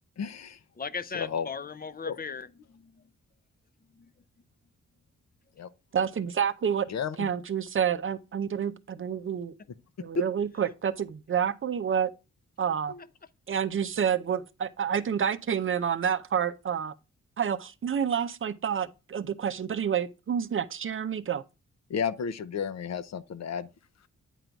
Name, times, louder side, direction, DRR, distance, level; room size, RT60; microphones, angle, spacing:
voice 1, 0.2-0.6 1.1-1.5 2.1-2.2 5.6-5.7 6.9-7.3 10.1-10.3 12.9-13.0 21.9-23.7, left 6 dB, 65° left, 0.7 m, -32 dB
voice 2, 0.8-3.0 3.9-4.1, left 5 dB, 30° left, 0.5 m, -38 dB
voice 3, 5.9-6.9 7.2-9.5 10.0-12.1 12.6-12.9 13.5-16.9 17.4-21.4, right 8 dB, 45° right, 0.6 m, -29 dB
9.2 x 3.9 x 4.5 m
cardioid pair, 95°, 29 cm